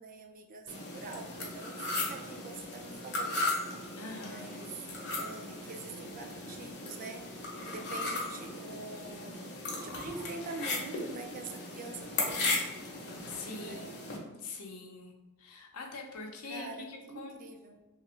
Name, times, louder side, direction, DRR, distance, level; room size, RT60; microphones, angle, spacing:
voice 1, 0.0-3.5 4.1-12.6 13.5-14.0 16.5-17.8, right 3 dB, 40° right, 4 dB, 0.3 m, -45 dB
sound 1, 0.7-14.2, left 2 dB, 50° left, 0.7 m, -37 dB
voice 2, 4.0-4.5 13.3-15.1 15.4-17.4, left 3 dB, 85° left, 2 dB, 0.6 m, -44 dB
2.9 x 2.4 x 3.0 m, 1.1 s
head